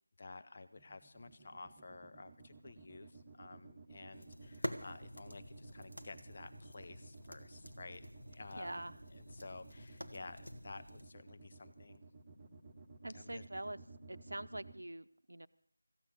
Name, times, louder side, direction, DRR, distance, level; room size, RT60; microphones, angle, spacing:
voice 1, 0.2-8.8 9.1-12.0 13.1-13.7, left 3 dB, 35° left, 11 dB, 0.5 m, -52 dB
sound 1, 0.8-14.7, right 3 dB, 15° right, 1.0 m, -56 dB
sound 2, 4.1-11.1, equal, 85° left, 1.7 m, -48 dB
voice 2, 8.5-9.0 13.0-13.8 14.1-15.5, right 1 dB, 65° right, 13 dB, 0.7 m, -44 dB
15.0 x 8.6 x 8.2 m, 0.68 s
figure-of-eight pair, 165°, 0 cm